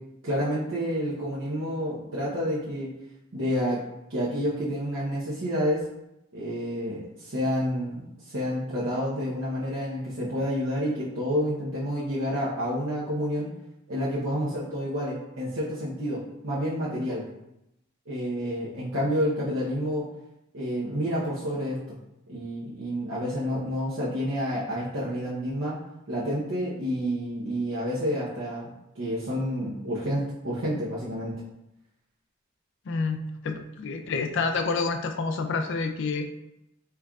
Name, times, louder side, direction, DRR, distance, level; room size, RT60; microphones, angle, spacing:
voice 1, 0.2-2.9 3.3-3.8 4.1-5.8 6.3-13.5 13.9-17.3 18.1-20.0 20.5-22.0 22.3-25.8 26.1-28.7 29.0-31.4, equal, 75° right, -9 dB, 0.8 m, -29 dB
voice 2, 32.9-36.3, left 4 dB, 60° left, 7 dB, 0.4 m, -28 dB
4.4 x 3.6 x 2.3 m, 0.86 s
head